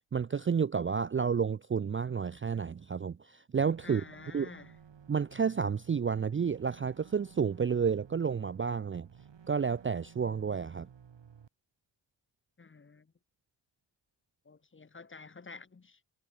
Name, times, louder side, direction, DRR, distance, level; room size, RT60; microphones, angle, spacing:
voice 1, 0.1-4.0 4.3-4.5 5.1-9.1 9.5-10.9, right 6 dB, 30° right, 0.4 m, -30 dB
sound 1, 3.5-11.5, right 7 dB, 70° right, 2.4 m, -55 dB
voice 2, 3.8-4.8 12.6-13.1 14.4-16.0, left 4 dB, 25° left, 0.8 m, -50 dB
cardioid pair, 70°, 46 cm